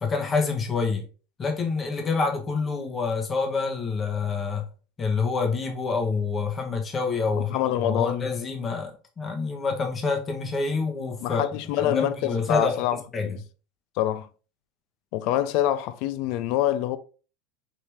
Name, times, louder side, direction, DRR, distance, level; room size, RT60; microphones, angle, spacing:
voice 1, 0.0-1.0 1.4-4.7 5.0-11.5 11.8-12.8 13.1-13.4, left 4 dB, 25° left, 1.1 m, -27 dB
voice 2, 7.4-8.3 11.2-13.4 14.0-14.3 15.1-17.0, left 12 dB, 60° left, 0.4 m, -26 dB
4.8 x 2.8 x 3.4 m
supercardioid pair, 110°, 0 cm